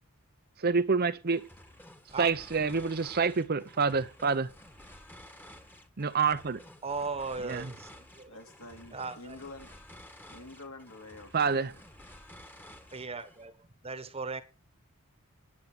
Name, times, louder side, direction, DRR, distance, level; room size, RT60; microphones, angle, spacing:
voice 1, 0.6-1.5 2.2-4.5 6.0-6.6 7.4-7.7 11.3-11.7, right 5 dB, 45° right, 0.7 m, -27 dB
sound 1, 1.3-13.5, left 1 dB, 10° left, 1.4 m, -52 dB
voice 2, 6.8-8.3 8.9-9.4 12.9-14.4, right 4 dB, 25° right, 1.3 m, -37 dB
voice 3, 8.3-9.7 10.3-11.7, left 2 dB, 70° left, 3.4 m, -47 dB
9.6 x 8.9 x 6.4 m
head